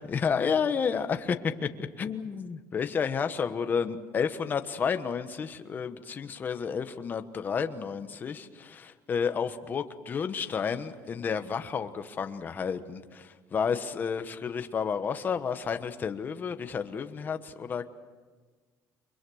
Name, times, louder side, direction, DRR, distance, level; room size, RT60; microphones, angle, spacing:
voice 1, 0.0-17.9, left 6 dB, 25° left, 9 dB, 1.2 m, -31 dB
29.5 x 23.5 x 6.4 m, 1.4 s
cardioid pair, 165°, 7 cm